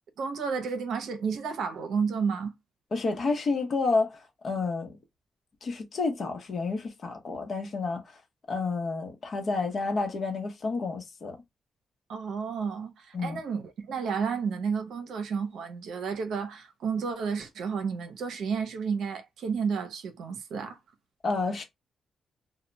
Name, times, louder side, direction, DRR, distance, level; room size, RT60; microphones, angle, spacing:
voice 1, 0.2-2.5 12.1-20.8, right 6 dB, 85° right, 0.6 m, -31 dB
voice 2, 2.9-5.0 5.6-8.0 8.5-11.4 13.1-13.4 21.2-21.6, left 3 dB, 50° left, 0.8 m, -30 dB
2.1 x 2.1 x 3.8 m
cardioid pair, 95°, 0 cm